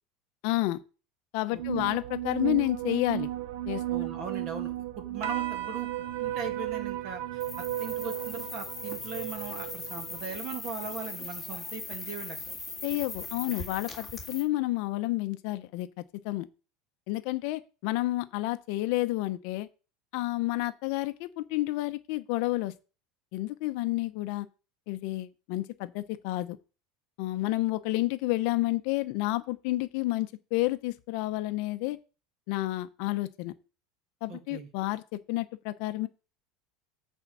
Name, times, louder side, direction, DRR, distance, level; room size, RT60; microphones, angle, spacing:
voice 1, 0.4-0.8 1.3-3.3 3.7-3.8 12.8-16.5 17.1-19.7 20.1-22.7 23.3-24.5 24.9-26.6 27.2-32.0 32.5-33.5 34.2-36.1, left 18 dB, 50° left, 0.7 m, -30 dB
voice 2, 1.5-1.8 3.9-5.9 6.2-12.4 34.3-34.7, right 5 dB, 35° right, 1.9 m, -39 dB
sound 1, 1.6-10.2, right 14 dB, 65° right, 1.0 m, -34 dB
sound 2, 7.4-14.4, left 4 dB, ahead, 2.1 m, -40 dB
8.5 x 4.4 x 7.0 m
supercardioid pair, 175°, 0 cm